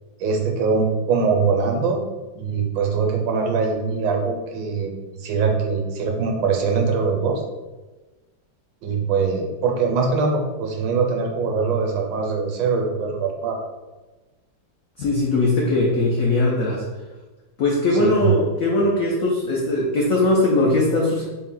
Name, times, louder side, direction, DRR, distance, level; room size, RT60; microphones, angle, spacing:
voice 1, 0.2-2.0 2.3-7.4 8.8-13.6 18.0-18.3, right 5 dB, 80° right, 2 dB, 1.4 m, -22 dB
voice 2, 15.0-16.8 17.6-21.2, left 2 dB, 85° left, -3 dB, 0.7 m, -20 dB
4.2 x 2.1 x 3.7 m, 1.2 s
omnidirectional pair, 2.1 m